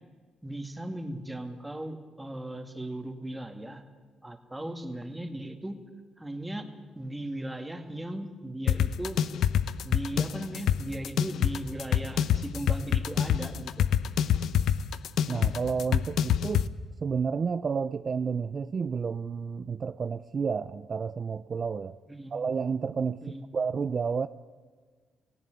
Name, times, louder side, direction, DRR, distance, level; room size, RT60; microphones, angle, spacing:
voice 1, 0.4-3.8 4.2-5.8 6.2-6.7 7.0-9.2 9.8-13.9 22.1-22.4 23.2-23.5, right 1 dB, 10° right, 2.4 m, -37 dB
sound 1, 8.7-16.7, left 9 dB, 75° left, 0.8 m, -26 dB
voice 2, 15.3-16.7 17.0-22.0 22.3-24.3, right 5 dB, 40° right, 0.5 m, -31 dB
18.0 x 16.5 x 9.3 m
cardioid pair, 90°, 0 cm